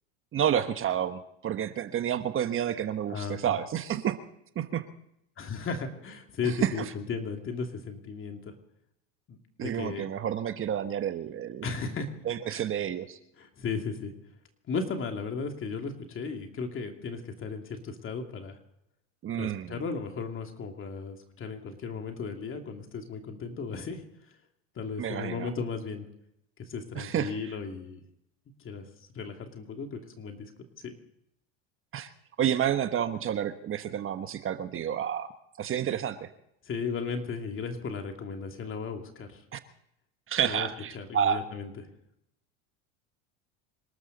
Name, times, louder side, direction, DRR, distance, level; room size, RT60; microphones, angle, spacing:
voice 1, 0.3-4.2 4.5-4.8 6.4-6.7 9.6-11.7 12.3-13.2 19.2-19.8 25.0-25.5 27.0-27.3 31.9-32.1 32.4-35.3 35.6-36.3 39.5-39.6 40.3-41.4, right 9 dB, 35° right, 10 dB, 1.2 m, -30 dB
voice 2, 3.1-3.6 5.4-8.5 9.3-10.1 11.6-12.1 12.5-12.7 13.4-14.1 14.7-18.6 19.4-24.4 24.7-26.0 26.6-28.0 28.6-28.9 29.1-30.5 30.8-30.9 36.6-39.5 40.4-40.7 40.9-41.7, left 5 dB, 35° left, 4 dB, 2.6 m, -35 dB
26.5 x 13.0 x 4.1 m, 0.77 s
supercardioid pair, 105°, 37 cm